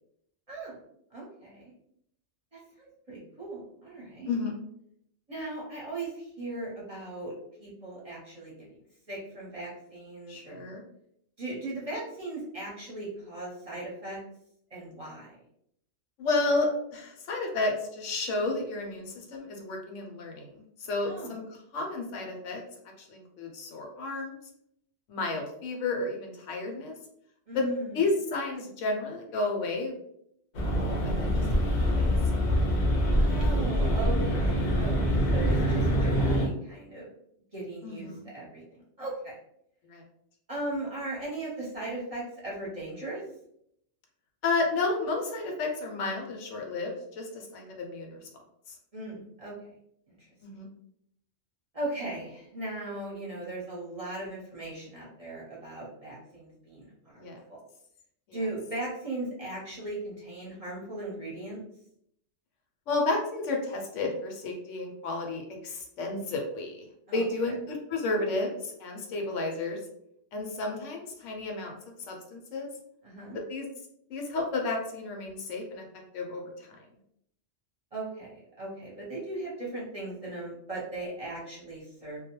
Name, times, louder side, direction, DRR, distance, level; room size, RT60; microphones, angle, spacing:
voice 1, 0.5-0.8 1.1-1.7 2.5-4.3 5.3-7.3 7.6-8.8 9.1-10.7 11.4-14.2 14.7-15.4 21.0-21.3 27.5-28.0 33.1-37.1 37.5-39.4 40.5-43.2 48.9-49.5 50.1-50.3 51.7-57.6 58.3-61.6 67.1-67.3 73.0-73.4 77.9-82.2, right 2 dB, 35° right, -6 dB, 0.7 m, -38 dB
voice 2, 10.3-10.8 16.2-22.6 23.0-24.4 25.1-26.9 27.5-27.6 27.9-29.9 31.0-31.4 31.8-32.2 37.8-38.3 39.8-40.0 44.4-48.3 50.4-50.7 57.1-57.4 58.3-58.4 62.9-66.9 67.1-69.8 70.3-71.8 72.1-72.7 73.5-73.7 74.1-75.9 76.1-76.4 76.7-76.9, left 3 dB, 80° left, 2 dB, 0.9 m, -32 dB
sound 1, 30.5-36.5, equal, 55° left, 0.5 m, -25 dB
2.3 x 2.1 x 2.9 m, 0.73 s
omnidirectional pair, 1.3 m